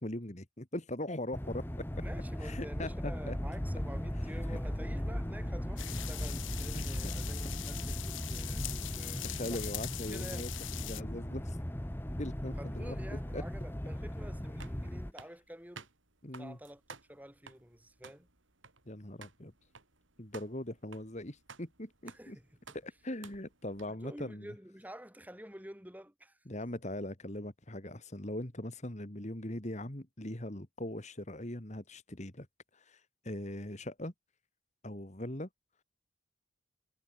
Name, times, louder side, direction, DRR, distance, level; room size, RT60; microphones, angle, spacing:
voice 1, 0.0-1.6 1.9-2.0 2.4-3.4 4.5-4.6 6.7-6.9 9.2-10.5 10.8-11.6 12.2-13.0 13.3-13.4 16.2-16.6 18.9-19.5 20.2-22.4 22.7-24.5 26.5-32.5 32.7-34.1 34.8-35.5, left 1 dB, 35° left, 2.3 m, -40 dB
sound 1, 1.3-15.1, equal, 10° left, 1.1 m, -38 dB
voice 2, 2.0-9.8 10.1-10.5 12.6-15.9 16.4-18.3 22.1-22.8 23.9-26.4, equal, 10° right, 6.4 m, -49 dB
sound 2, 5.8-11.0, left 16 dB, 70° left, 0.7 m, -42 dB
sound 3, 14.1-23.9, right 5 dB, 70° right, 4.7 m, -55 dB
head